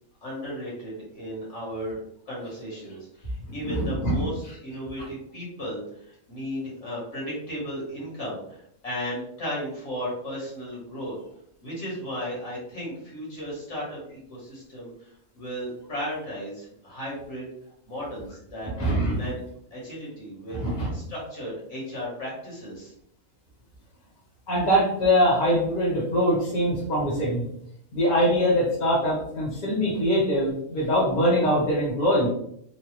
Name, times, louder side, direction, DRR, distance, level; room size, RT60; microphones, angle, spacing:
voice 1, 0.2-11.2 11.6-15.1 15.3-17.5 17.9-18.7 19.1-19.5 19.7-22.9, equal, 60° left, -5 dB, 1.5 m, -35 dB
voice 2, 3.6-4.2 18.8-19.2 20.5-20.9 24.5-27.4 27.9-32.3, equal, 35° left, -5 dB, 1.2 m, -23 dB
3.2 x 2.2 x 3.0 m, 0.72 s
omnidirectional pair, 1.5 m